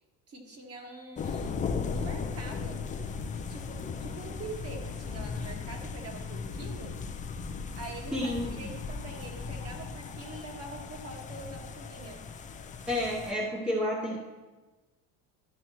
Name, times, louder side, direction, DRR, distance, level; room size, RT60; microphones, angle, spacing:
voice 1, 0.3-2.8 3.3-7.0 7.7-12.3, right 2 dB, 35° right, 1 dB, 1.7 m, -44 dB
sound 1, 1.2-13.3, left 5 dB, 20° left, 0.4 m, -37 dB
voice 2, 8.1-8.7 12.9-14.2, left 1 dB, ahead, -2 dB, 0.8 m, -30 dB
12.0 x 6.2 x 3.0 m, 1.2 s
cardioid pair, 125°, 40 cm